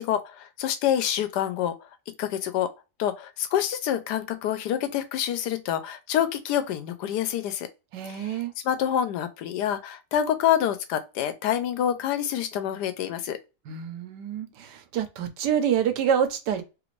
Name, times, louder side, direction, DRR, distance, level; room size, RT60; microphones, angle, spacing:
voice 1, 0.0-1.7 2.2-2.7 3.0-7.7 8.1-8.4 8.6-13.4, left 10 dB, 80° left, 1.2 m, -27 dB
voice 2, 7.9-8.5 13.7-16.6, right 8 dB, 90° right, 1.3 m, -27 dB
3.2 x 2.5 x 3.1 m
omnidirectional pair, 1.8 m